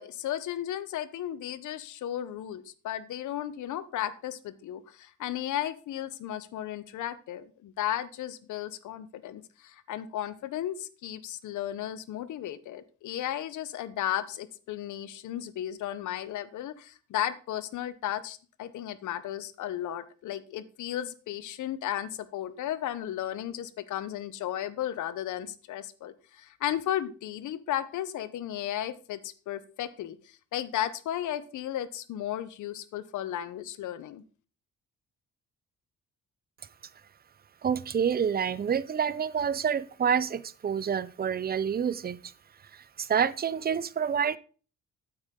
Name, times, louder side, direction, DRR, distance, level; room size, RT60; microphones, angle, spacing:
voice 1, 0.0-34.2, left 11 dB, 75° left, 0.9 m, -34 dB
voice 2, 37.6-42.3 42.7-44.4, right 7 dB, 30° right, 0.6 m, -28 dB
8.9 x 7.9 x 3.8 m
cardioid pair, 90°, 30 cm